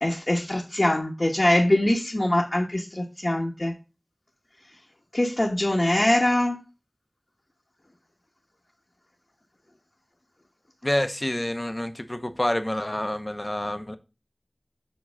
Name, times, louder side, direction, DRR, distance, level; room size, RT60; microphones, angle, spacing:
voice 1, 0.0-3.7 5.1-6.6, left 1 dB, 50° left, 1.1 m, -23 dB
voice 2, 10.8-14.0, left 1 dB, 30° left, 0.8 m, -28 dB
7.4 x 3.0 x 6.1 m
wide cardioid pair, 40°, 0 cm